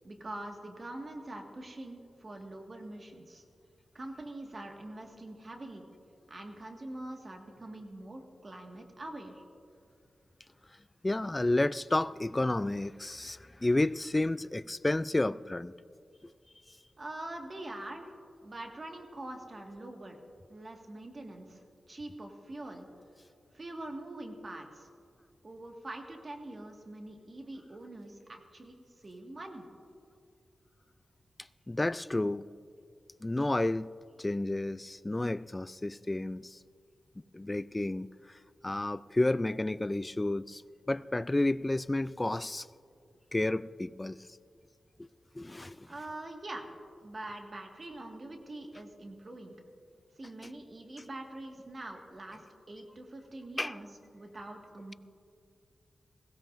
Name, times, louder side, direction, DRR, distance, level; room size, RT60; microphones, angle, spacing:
voice 1, 0.0-3.4 3.9-5.9 6.3-9.4 17.0-18.1 18.4-20.2 20.5-22.9 23.5-24.9 25.4-29.7 45.9-46.7 47.0-49.5 50.2-53.9 54.1-54.9, right 1 dB, 45° right, 1.8 m, -44 dB
voice 2, 11.0-15.7 31.7-32.5 33.2-36.6 37.3-40.6 40.9-42.7 43.3-44.2 45.3-45.9 53.6-53.8, left 2 dB, 20° left, 0.3 m, -31 dB
21.0 x 16.5 x 2.6 m
cardioid pair, 65°, 0 cm